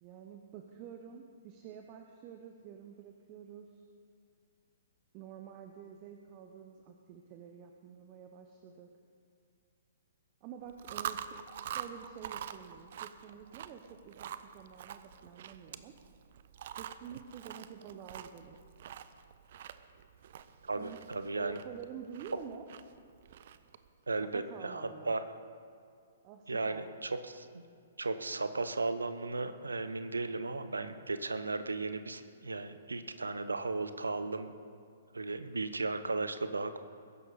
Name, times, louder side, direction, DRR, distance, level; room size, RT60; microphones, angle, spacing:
voice 1, 0.0-3.8 5.1-8.9 10.4-11.4 11.6-15.9 16.7-18.6 20.7-21.0 21.4-22.7 24.3-25.1 26.2-26.9, right 8 dB, 30° right, 5 dB, 1.0 m, -49 dB
Chewing mastication, 10.7-23.9, right 9 dB, 50° right, 0.6 m, -45 dB
voice 2, 20.7-21.6 24.1-25.2 26.5-27.6 28.0-34.5 35.1-36.8, right 3 dB, 75° right, 10 dB, 1.0 m, -35 dB
21.0 x 11.0 x 4.2 m, 2.4 s
figure-of-eight pair, 120°, 0 cm